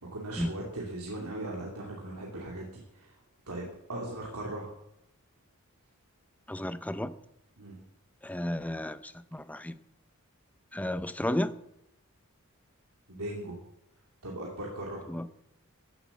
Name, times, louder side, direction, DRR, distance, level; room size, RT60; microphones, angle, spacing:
voice 1, 0.0-3.1 3.5-4.7 7.6-7.8 13.1-13.6 14.2-15.1, right 1 dB, 90° right, -2 dB, 2.6 m, -38 dB
voice 2, 6.5-7.1 8.2-9.7 10.7-11.5 15.1-15.3, left 1 dB, 5° left, 13 dB, 0.6 m, -33 dB
14.0 x 10.5 x 7.1 m, 0.82 s
head